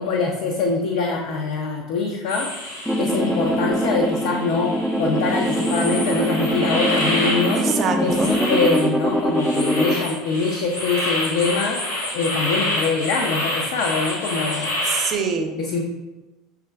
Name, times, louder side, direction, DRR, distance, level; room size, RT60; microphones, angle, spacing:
voice 1, 0.0-2.5 3.0-7.7 8.0-14.7 15.6-15.8, left 4 dB, 65° left, 1 dB, 0.4 m, -24 dB
sound 1, 2.3-15.1, left 1 dB, 80° left, 1.2 m, -28 dB
sound 2, 2.9-10.0, equal, ahead, 0.4 m, -23 dB
voice 2, 7.6-8.3 14.5-15.5, right 6 dB, 45° right, 5 dB, 0.6 m, -25 dB
5.6 x 3.4 x 2.3 m, 1.1 s
hypercardioid pair, 75°, 0 cm